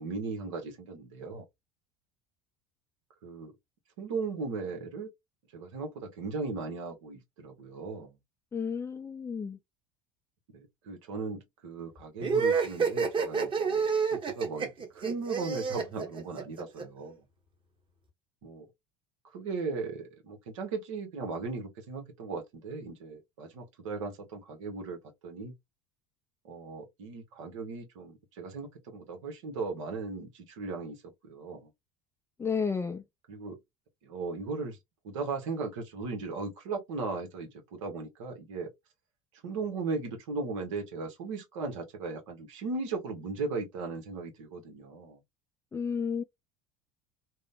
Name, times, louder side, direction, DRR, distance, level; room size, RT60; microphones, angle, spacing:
voice 1, 0.0-1.4 3.2-3.5 4.0-5.1 5.5-8.1 10.5-17.2 18.4-18.7 19.3-25.0 25.2-25.5 26.5-31.0 31.2-31.7 33.3-33.6 34.0-34.8 35.0-38.7 39.4-45.2, right 4 dB, 85° right, 1.0 m, -37 dB
voice 2, 8.5-9.6 32.4-33.0 45.7-46.2, left 6 dB, 15° left, 0.4 m, -32 dB
sound 1, 12.2-16.8, right 5 dB, 30° right, 1.0 m, -28 dB
2.9 x 2.1 x 2.4 m
supercardioid pair, 85°, 16 cm